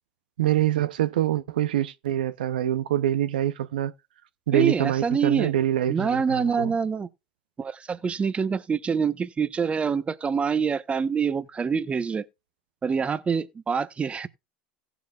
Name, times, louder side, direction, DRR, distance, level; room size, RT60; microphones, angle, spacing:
voice 1, 0.4-3.9 4.5-6.7, right 12 dB, 85° right, 0.5 m, -25 dB
voice 2, 4.5-5.5 5.9-7.1 7.6-12.2 12.8-14.3, right 6 dB, 25° right, 0.9 m, -26 dB
17.0 x 7.1 x 2.3 m
hypercardioid pair, 85°, 5 cm